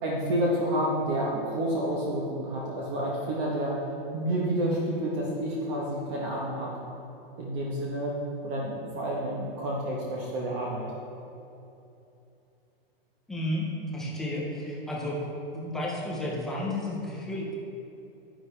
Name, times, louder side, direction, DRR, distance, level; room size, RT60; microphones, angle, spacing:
voice 1, 0.0-3.8 4.1-6.7 7.4-8.1 8.4-10.9, right 1 dB, 30° right, -4 dB, 1.1 m, -29 dB
voice 2, 13.3-13.7 13.9-15.2 15.5-17.6, left 1 dB, ahead, -5 dB, 0.3 m, -32 dB
9.9 x 9.6 x 3.3 m, 2.8 s
hypercardioid pair, 165°, 29 cm